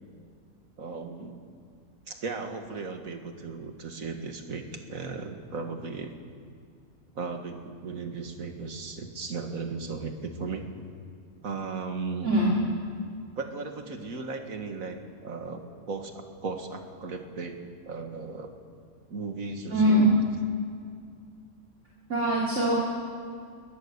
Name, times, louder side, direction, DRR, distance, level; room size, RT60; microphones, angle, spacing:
voice 1, 0.8-1.4 2.1-6.2 7.2-10.7 11.4-12.3 13.4-15.6 15.9-17.6 17.9-18.5 19.1-20.1, right 4 dB, 70° right, 5 dB, 2.2 m, -36 dB
voice 2, 12.2-12.5 19.7-20.1 22.1-22.7, right 1 dB, 55° right, -5 dB, 3.4 m, -22 dB
21.5 x 19.5 x 7.0 m, 2.3 s
omnidirectional pair, 1.5 m